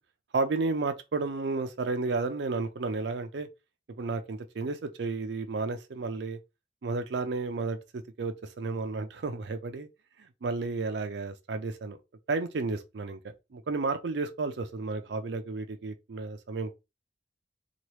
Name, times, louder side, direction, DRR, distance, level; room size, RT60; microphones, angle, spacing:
voice 1, 0.3-3.5 4.0-6.4 6.8-7.8 8.2-9.9 10.2-12.0 12.3-13.2 13.5-16.7, right 3 dB, 75° right, 0.5 m, -32 dB
2.9 x 2.3 x 3.1 m
head